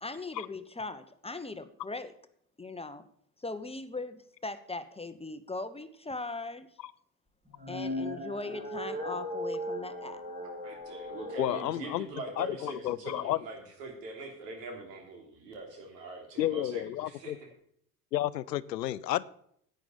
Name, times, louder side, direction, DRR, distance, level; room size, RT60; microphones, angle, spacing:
voice 1, 0.0-2.1 2.6-3.1 3.4-6.7 7.7-10.2, left 3 dB, 10° left, 1.1 m, -39 dB
sound 1, 7.4-11.8, equal, 20° right, 5.7 m, -38 dB
voice 2, 10.6-17.5, right 2 dB, 80° right, 3.4 m, -43 dB
voice 3, 11.4-12.1 12.4-13.4 16.4-17.4 18.1-19.2, left 14 dB, 90° left, 0.6 m, -31 dB
10.5 x 9.1 x 5.3 m
hypercardioid pair, 65°, 48 cm